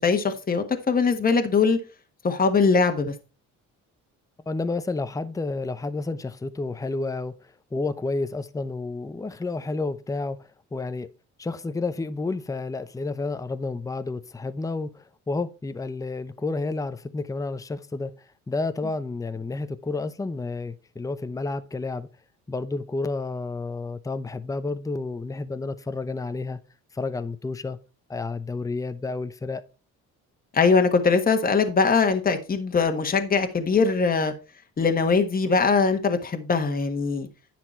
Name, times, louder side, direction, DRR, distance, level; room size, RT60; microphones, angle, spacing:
voice 1, 0.0-1.8 2.2-3.1 30.5-34.3 34.8-37.3, left 4 dB, 30° left, 1.4 m, -21 dB
voice 2, 4.5-11.1 11.4-18.1 18.5-22.1 22.5-26.6 26.9-27.8 28.1-29.6, left 3 dB, 10° left, 0.7 m, -30 dB
10.0 x 5.9 x 4.3 m
cardioid pair, 95°, 31 cm